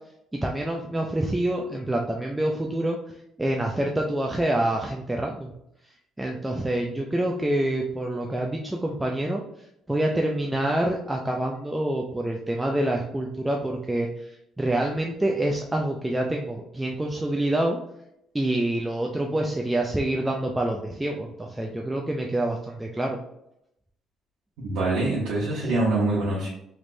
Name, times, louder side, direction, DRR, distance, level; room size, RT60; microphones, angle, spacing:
voice 1, 0.3-3.0 3.4-5.5 6.2-9.4 9.9-17.8 18.3-23.2, right 1 dB, 10° right, 0 dB, 0.3 m, -26 dB
voice 2, 24.6-26.5, right 2 dB, 85° right, -7 dB, 0.9 m, -24 dB
3.3 x 3.1 x 2.5 m, 0.78 s
cardioid pair, 150°, 0 cm